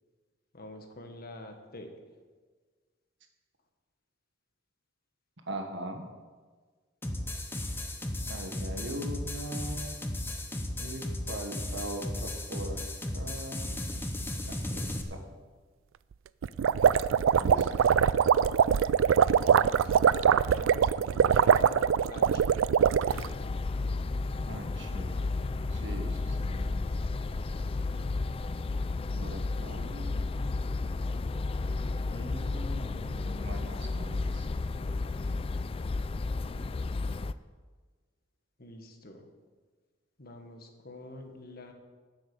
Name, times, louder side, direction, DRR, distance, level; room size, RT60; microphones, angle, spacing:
voice 1, 0.5-1.9 19.2-22.5 38.6-39.3 40.2-41.7, left 1 dB, 50° left, 4 dB, 1.5 m, -47 dB
voice 2, 5.5-6.0 8.3-9.9 10.8-12.8 13.1-13.8 14.5-15.2 17.4-17.7 24.5-25.2 25.7-26.7 29.1-30.2 32.1-34.5, right 1 dB, 65° right, 4 dB, 1.6 m, -41 dB
sound 1, 7.0-15.0, left 1 dB, 10° left, 0.9 m, -35 dB
sound 2, 16.4-23.3, right 7 dB, 85° right, 0.3 m, -23 dB
sound 3, 23.1-37.3, left 3 dB, 30° left, 0.3 m, -32 dB
9.9 x 8.3 x 6.8 m, 1.5 s
head